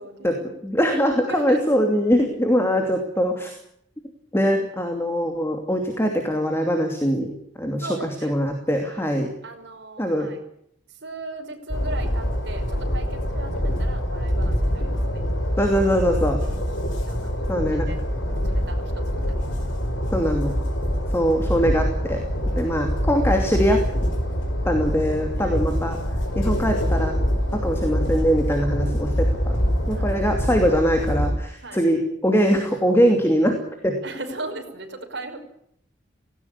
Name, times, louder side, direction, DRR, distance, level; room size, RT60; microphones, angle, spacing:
voice 1, 0.0-0.5 1.3-1.6 7.8-8.4 8.8-9.1 9.4-10.4 11.0-15.2 16.1-16.6 17.1-18.0 18.3-19.6 20.8-21.1 22.5-22.8 25.4-25.6 29.9-30.2 31.6-31.8 34.0-35.4, right 2 dB, 65° right, 3 dB, 5.4 m, -38 dB
voice 2, 0.6-3.5 4.3-7.3 7.6-9.3 10.0-10.3 15.6-16.4 17.5-17.9 20.1-20.5 21.1-22.2 22.5-23.8 24.6-26.0 26.3-27.2 27.5-29.6 29.9-33.6 33.8-34.0, equal, 15° left, 4 dB, 2.7 m, -22 dB
Train, 11.7-31.3, equal, 85° left, 4.8 m, -25 dB
18.0 x 18.0 x 9.8 m, 0.71 s
head